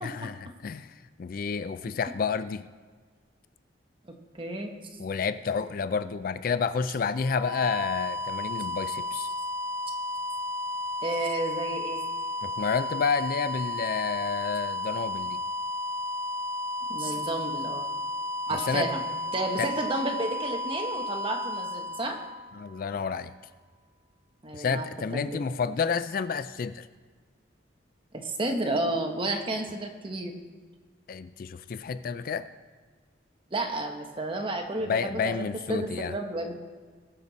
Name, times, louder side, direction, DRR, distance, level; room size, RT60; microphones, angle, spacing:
voice 1, 0.0-2.7 5.0-9.3 12.4-15.4 18.5-18.9 19.6-19.7 22.5-23.3 24.5-26.9 31.1-32.5 34.9-36.1, left 5 dB, 45° left, 13 dB, 0.3 m, -30 dB
voice 2, 4.3-4.7 11.0-12.0 16.9-17.9 18.5-19.0 19.3-22.2 24.4-24.9 25.1-25.5 28.2-30.4 33.5-36.6, right 2 dB, 25° right, 3 dB, 1.2 m, -31 dB
sound 1, 7.1-22.9, left 1 dB, 5° left, 2.6 m, -33 dB
19.5 x 6.6 x 4.1 m, 1.5 s
head